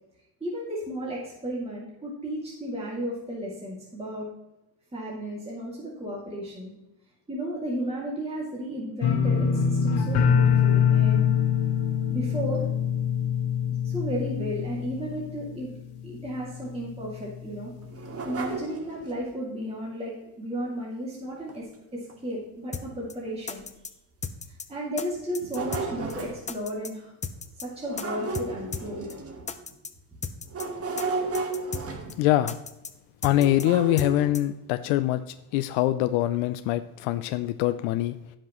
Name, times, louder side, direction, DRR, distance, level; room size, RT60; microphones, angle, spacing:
voice 1, 0.4-4.3 4.9-6.7 7.3-11.3 12.1-12.7 13.8-15.7 16.0-17.7 18.2-23.6 24.4-27.1 27.5-29.1, equal, 15° right, -5 dB, 2.5 m, -34 dB
sound 1, 9.0-15.9 16.2-16.7 17.1-17.2, left 7 dB, 65° left, 1.7 m, -24 dB
sound 2, 17.8-19.3 21.5-21.6 22.1-22.2 22.9-23.0 23.6-23.7 25.1-26.5 27.8-29.6 30.5-32.4 33.3-34.3, right 3 dB, 30° right, 1.5 m, -33 dB
sound 3, 22.7-22.8 23.1-23.2 23.5-23.9 24.2-24.7 25.0-25.1 25.3-25.8 26.1-26.2 26.5-26.9 27.2-27.7 28.0-28.1 28.3-28.5 28.7-28.8 29.1-29.2 29.5-29.9 30.2-30.7 31.0-31.1 31.3-31.8 32.1-32.2 32.5-32.9 33.2-33.7 34.0-34.1 34.3-34.4, left 5 dB, 15° left, 0.6 m, -35 dB
voice 2, 32.2-32.6 33.2-35.2 35.5-38.2, left 14 dB, 90° left, 11 dB, 0.6 m, -24 dB
16.0 x 5.9 x 3.1 m, 0.91 s
cardioid pair, 110°, 44 cm